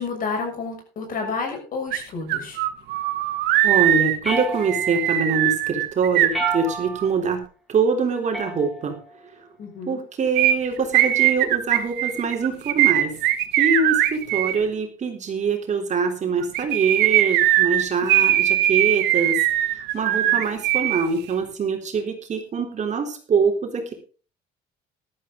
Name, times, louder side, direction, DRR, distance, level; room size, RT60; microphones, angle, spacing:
voice 1, 0.0-2.6 9.6-10.0 20.3-20.4, left 4 dB, 55° left, 3 dB, 6.8 m, -30 dB
sound 1, 1.9-2.0 2.3-7.1 10.3-14.6 16.4-21.0 21.3-21.4, right 13 dB, 85° right, 1.7 m, -20 dB
voice 2, 3.6-7.4 7.7-9.0 9.9-13.1 13.6-19.4 19.7-23.9, right 5 dB, 45° right, 4 dB, 3.6 m, -24 dB
sound 2, 4.2-5.1 6.3-7.1 8.3-9.1, right 1 dB, ahead, 4.7 m, -30 dB
14.5 x 12.5 x 3.9 m, 0.35 s
cardioid pair, 110°, 17 cm